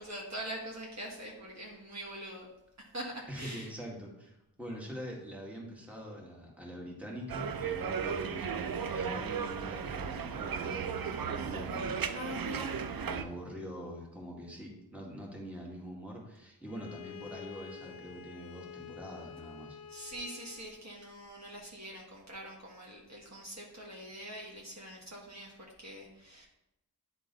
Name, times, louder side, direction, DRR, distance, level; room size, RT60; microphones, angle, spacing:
voice 1, 0.0-2.5 2.9-3.7 12.1-12.8 19.9-26.5, right 1 dB, 45° right, -3 dB, 1.7 m, -43 dB
voice 2, 3.3-12.0 12.3-12.4 13.0-19.8, equal, 5° right, -3 dB, 2.0 m, -44 dB
sound 1, 7.3-13.2, right 6 dB, 65° right, 0.6 m, -35 dB
Bowed string instrument, 16.7-20.9, left 8 dB, 60° left, 0.5 m, -49 dB
10.0 x 3.7 x 4.0 m, 0.88 s
wide cardioid pair, 55°, 39 cm